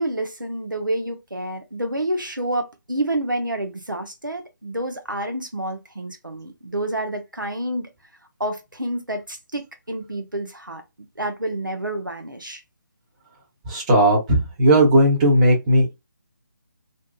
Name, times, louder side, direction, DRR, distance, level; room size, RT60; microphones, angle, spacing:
voice 1, 0.0-7.9 8.4-10.8 11.2-12.6, right 1 dB, 90° right, 0.7 m, -28 dB
voice 2, 13.7-15.9, right 1 dB, 20° right, 0.9 m, -16 dB
2.7 x 2.3 x 2.2 m
figure-of-eight pair, 150°, 10 cm